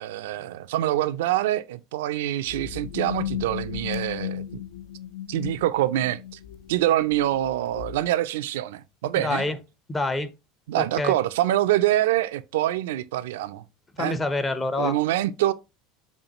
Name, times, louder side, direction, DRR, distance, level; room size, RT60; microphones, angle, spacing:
voice 1, 0.0-4.6 5.3-6.4 6.7-9.5 10.7-13.6 14.0-14.2 14.8-15.5, right 14 dB, 80° right, 0.3 m, -25 dB
sound 1, 2.4-8.1, left 11 dB, 75° left, 0.4 m, -35 dB
voice 2, 9.2-9.6 9.9-10.3 10.8-11.1 14.0-15.0, left 2 dB, 20° left, 0.5 m, -26 dB
5.2 x 2.3 x 2.8 m
hypercardioid pair, 90°, 0 cm